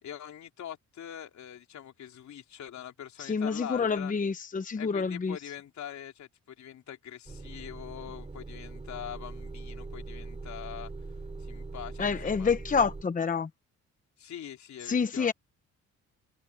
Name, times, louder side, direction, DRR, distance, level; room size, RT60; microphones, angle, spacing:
voice 1, 0.0-4.1 4.8-10.9 11.4-12.5 14.2-15.3, left 10 dB, 65° left, 4.1 m, -43 dB
voice 2, 3.2-5.4 12.0-13.5 14.8-15.3, left 5 dB, 25° left, 1.0 m, -28 dB
Motor vehicle (road) / Engine starting / Idling, 7.3-13.0, right 3 dB, 20° right, 3.3 m, -41 dB
cardioid pair, 90°, 30 cm